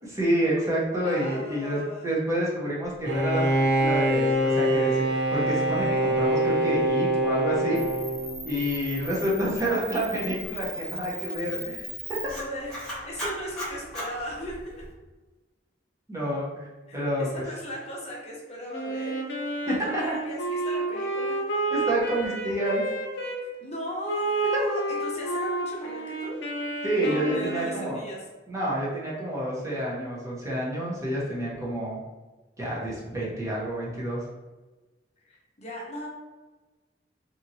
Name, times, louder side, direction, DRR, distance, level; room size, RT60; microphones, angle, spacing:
voice 1, 0.0-7.9 8.4-11.8 16.1-16.5 16.9-17.4 19.7-20.2 21.7-22.8 24.5-24.6 26.8-28.0 28.5-32.0 32.6-34.2, right 1 dB, 20° right, -6 dB, 0.7 m, -28 dB
voice 2, 1.0-2.1 12.3-14.8 16.9-21.4 23.4-26.4 27.0-28.2 35.3-36.1, equal, 35° left, -3 dB, 0.7 m, -37 dB
Bowed string instrument, 3.0-8.6, right 1 dB, 65° right, 0.6 m, -24 dB
Camera, 7.7-14.9, equal, 5° left, 1.3 m, -37 dB
Wind instrument woodwind instrument, 18.7-23.4 24.1-28.0, right 2 dB, 80° left, 0.5 m, -30 dB
2.8 x 2.6 x 2.6 m, 1.2 s
head